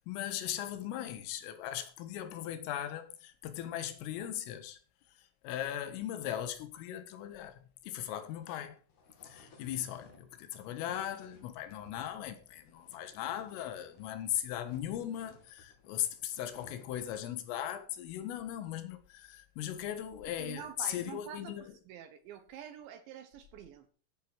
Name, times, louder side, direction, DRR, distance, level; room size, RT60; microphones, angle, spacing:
voice 1, 0.1-4.8 5.4-8.8 9.2-21.6, left 11 dB, 85° left, 4.1 m, -38 dB
sound 1, 7.9-14.2 14.4-17.2, left 3 dB, 45° left, 3.4 m, -61 dB
voice 2, 20.4-23.9, right 9 dB, 70° right, 3.2 m, -47 dB
14.5 x 9.1 x 4.7 m
omnidirectional pair, 5.7 m